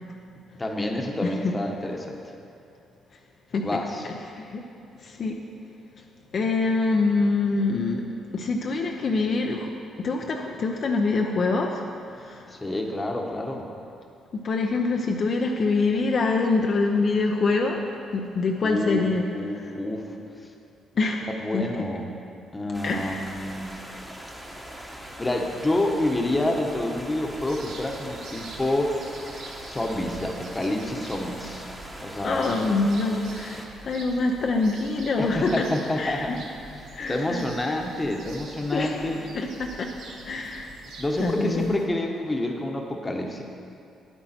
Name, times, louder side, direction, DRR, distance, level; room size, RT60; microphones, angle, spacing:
voice 1, 0.6-2.2 3.6-4.0 12.5-13.7 18.6-19.0 19.3-20.2 21.4-22.1 22.5-23.8 25.2-29.0 29.7-31.7 32.0-32.5 35.2-36.4 37.1-39.2 41.0-43.4, left 1 dB, 20° left, 2 dB, 1.1 m, -28 dB
voice 2, 5.0-5.4 6.3-8.0 8.3-9.7 10.0-11.8 12.2-12.4 14.3-17.8 18.1-19.3 21.0-21.3 21.5-21.7 22.8-23.3 32.2-35.7 36.0-36.4 36.9-37.5 38.7-39.0 39.3-39.9 40.2-40.7 41.2-41.8, left 3 dB, 50° left, 1 dB, 0.7 m, -25 dB
sound 1, 22.7-33.6, equal, 5° right, 1.2 m, -41 dB
sound 2, 27.2-41.9, right 3 dB, 80° right, 1.1 m, -45 dB
9.0 x 8.9 x 4.4 m, 2.6 s
cardioid pair, 90°, 0 cm